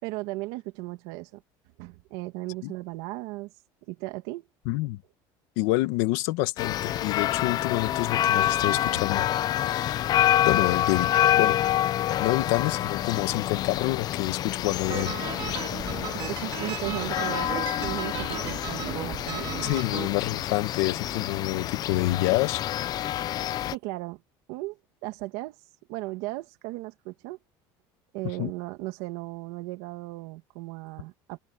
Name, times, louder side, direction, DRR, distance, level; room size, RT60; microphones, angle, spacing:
voice 1, 0.0-1.4 1.8-3.5 3.9-4.5 16.1-19.5 23.7-24.2 24.5-25.6 25.9-27.4 28.1-31.4, right 20 dB, 85° right, 2.2 m, -36 dB
voice 2, 4.7-5.0 5.6-9.3 9.6-10.1 10.4-11.1 11.4-11.6 12.2-15.1 19.6-22.6 28.4-28.5, left 19 dB, 85° left, 1.8 m, -27 dB
sound 1, 6.6-23.7, left 12 dB, 45° left, 0.7 m, -27 dB
sound 2, 14.9-20.1, right 12 dB, 50° right, 3.2 m, -36 dB
cardioid pair, 140°, 10 cm